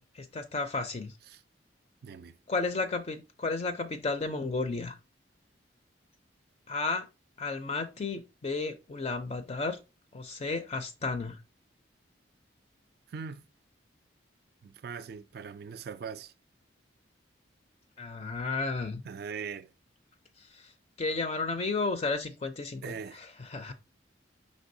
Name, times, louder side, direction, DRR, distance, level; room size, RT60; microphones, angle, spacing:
voice 1, 0.0-1.1 2.5-5.0 6.7-7.1 7.4-9.8 10.1-11.4 18.0-19.0 20.5-20.6 21.0-23.7, left 3 dB, 35° left, 0.4 m, -33 dB
voice 2, 2.0-2.4 13.1-13.4 14.6-16.3 19.0-19.7 22.8-23.2, right 6 dB, 55° right, 0.3 m, -41 dB
5.2 x 3.5 x 2.6 m
head